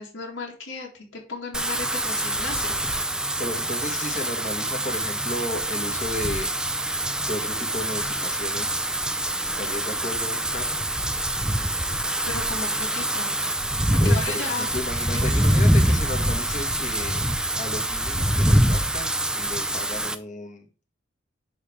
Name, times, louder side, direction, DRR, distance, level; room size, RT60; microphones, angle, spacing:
voice 1, 0.0-2.9 3.2-3.3 12.2-13.4 13.9-14.7 15.1-15.2, left 3 dB, 85° left, -2 dB, 2.2 m, -35 dB
Wind / Rain, 1.5-20.2, right 1 dB, 5° right, 0.4 m, -25 dB
voice 2, 3.4-6.5 7.3-8.9 9.6-10.8 14.0-20.7, left 1 dB, 40° left, 2 dB, 1.6 m, -34 dB
10.5 x 3.4 x 5.0 m, 0.37 s
head